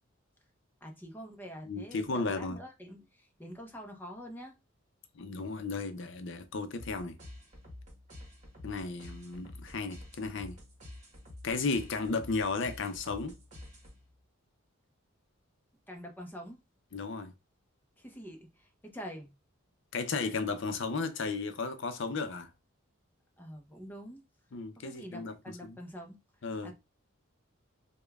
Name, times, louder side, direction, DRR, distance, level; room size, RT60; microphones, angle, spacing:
voice 1, 0.8-4.6 15.9-16.6 18.0-19.3 23.4-24.2 24.8-26.2 26.6-26.7, equal, 10° left, 0.6 m, -46 dB
voice 2, 1.7-2.6 5.1-7.2 8.6-10.6 11.4-13.4 16.9-17.3 19.9-22.5 24.5-25.3 25.7-25.8 26.4-26.7, left 4 dB, 60° left, 0.5 m, -34 dB
sound 1, 6.7-14.2, left 1 dB, 35° right, 1.1 m, -49 dB
5.0 x 2.2 x 2.3 m
head